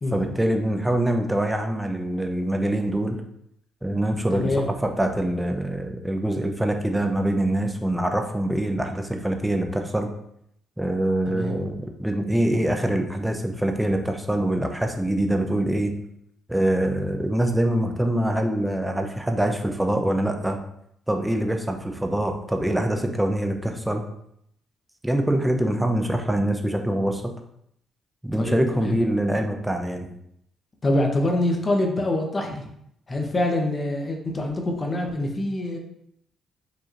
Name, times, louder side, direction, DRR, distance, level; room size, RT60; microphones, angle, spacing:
voice 1, 0.1-3.2 3.8-4.5 4.8-10.1 10.8-15.9 16.5-20.6 21.1-24.0 25.0-27.3 28.2-30.1, right 1 dB, 5° right, 4 dB, 0.6 m, -24 dB
voice 2, 4.3-4.7 11.3-11.6 28.3-28.9 30.8-32.7 33.1-35.8, left 1 dB, 30° left, 2 dB, 0.9 m, -25 dB
4.9 x 2.9 x 2.6 m, 0.73 s
cardioid pair, 90°, 0 cm